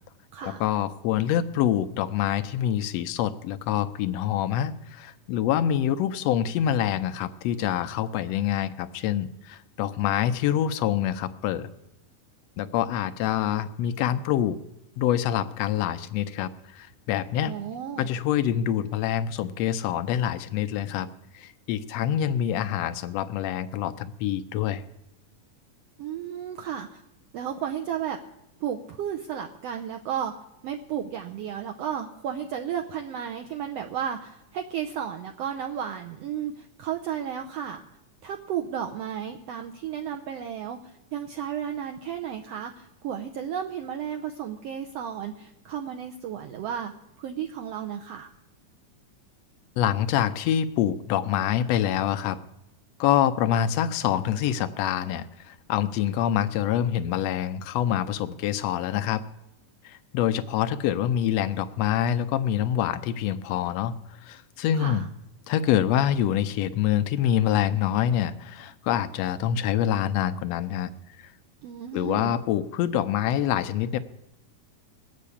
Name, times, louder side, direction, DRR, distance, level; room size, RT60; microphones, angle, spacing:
voice 1, 0.4-11.7 12.6-14.6 15.0-17.5 18.0-21.1 21.3-24.8 49.8-52.4 53.0-59.2 59.8-63.9 64.2-65.0 65.5-70.9 71.2-71.3 71.9-74.0, left 10 dB, 80° left, 10 dB, 1.5 m, -26 dB
voice 2, 17.4-18.1 26.0-27.0 27.3-28.2 28.6-37.8 38.2-48.3 64.8-65.1 71.6-72.4, right 9 dB, 75° right, 4 dB, 1.5 m, -33 dB
20.0 x 7.4 x 8.4 m, 0.88 s
omnidirectional pair, 3.7 m